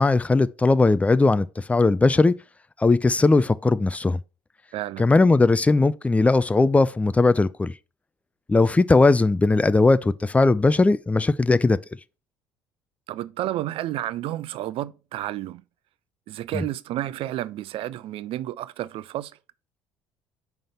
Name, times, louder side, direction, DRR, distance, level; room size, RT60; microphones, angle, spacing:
voice 1, 0.0-2.3 2.8-4.2 5.0-7.7 8.5-11.8 16.5-16.6, left 3 dB, 10° left, 0.4 m, -19 dB
voice 2, 4.7-5.1 13.1-15.6 16.3-19.3, right 14 dB, 60° right, 0.4 m, -31 dB
5.3 x 3.5 x 5.6 m
hypercardioid pair, 60°, 11 cm